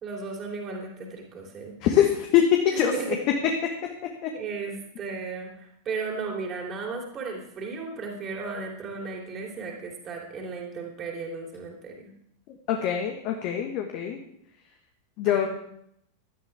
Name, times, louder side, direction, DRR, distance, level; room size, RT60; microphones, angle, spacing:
voice 1, 0.0-1.7 2.7-3.1 4.3-12.1 15.2-15.5, right 4 dB, 30° right, 0 dB, 3.1 m, -35 dB
voice 2, 1.8-3.2 3.6-3.7 4.2-4.3 12.7-14.2 15.2-15.5, left 10 dB, 40° left, 3 dB, 1.5 m, -23 dB
17.0 x 12.0 x 3.5 m, 0.73 s
figure-of-eight pair, 90°, 0 cm